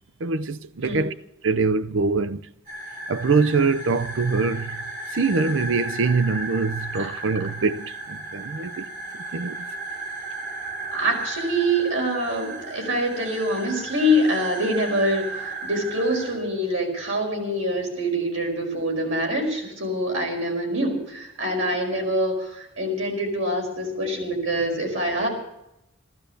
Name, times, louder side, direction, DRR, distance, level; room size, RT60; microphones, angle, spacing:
voice 1, 0.2-1.1 1.4-2.4 3.1-4.8 5.1-8.9 9.3-9.7, right 4 dB, 70° right, 0.6 m, -24 dB
sound 1, 2.7-16.3, right 2 dB, 45° right, 6.2 m, -35 dB
voice 2, 10.9-25.3, equal, 90° right, 5.3 m, -25 dB
16.0 x 12.5 x 6.8 m
head